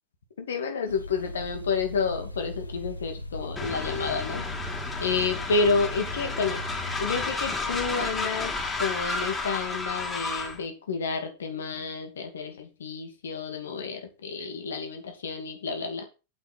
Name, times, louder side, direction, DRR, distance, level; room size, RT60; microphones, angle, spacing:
voice 1, 0.4-4.5 5.0-6.6 7.0-8.5 8.8-16.0, left 4 dB, 65° left, 5 dB, 2.4 m, -30 dB
sound 1, 0.9-7.2, left 1 dB, 80° left, 1.0 m, -38 dB
Train, 3.6-10.6, left 3 dB, 15° left, 3.8 m, -32 dB
9.2 x 8.1 x 4.4 m, 0.29 s
figure-of-eight pair, 90°, 0 cm